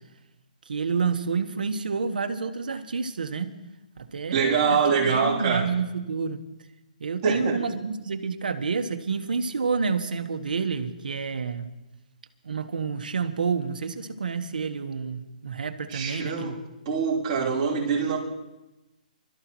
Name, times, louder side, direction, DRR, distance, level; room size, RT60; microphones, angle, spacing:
voice 1, 0.7-3.6 4.0-6.4 7.0-11.7 12.4-16.6, right 5 dB, 80° right, 8 dB, 1.4 m, -29 dB
voice 2, 4.3-5.7 7.2-7.6 15.9-16.5 16.8-18.2, right 5 dB, 25° right, -6 dB, 3.3 m, -24 dB
25.5 x 13.5 x 3.1 m, 1.0 s
hypercardioid pair, 175°, 5 cm